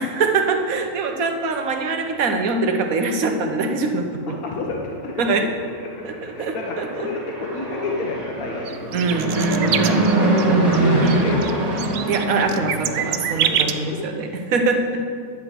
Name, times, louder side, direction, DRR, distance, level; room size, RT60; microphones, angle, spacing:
voice 1, 0.0-4.4 5.2-5.4 6.0-7.1 8.9-10.1 11.0-11.3 12.1-15.0, right 3 dB, 70° right, 5 dB, 1.4 m, -23 dB
voice 2, 4.3-5.2 5.8-8.8 9.5-11.8 13.4-14.0, left 3 dB, 70° left, -1 dB, 1.4 m, -30 dB
Fixed-wing aircraft airplane, 6.5-13.9, right 2 dB, 25° right, 1.5 m, -23 dB
sound 1, 8.7-10.4 10.7-10.8 11.1-13.7, right 10 dB, 85° right, 1.1 m, -25 dB
10.5 x 5.9 x 8.0 m, 2.3 s
omnidirectional pair, 1.6 m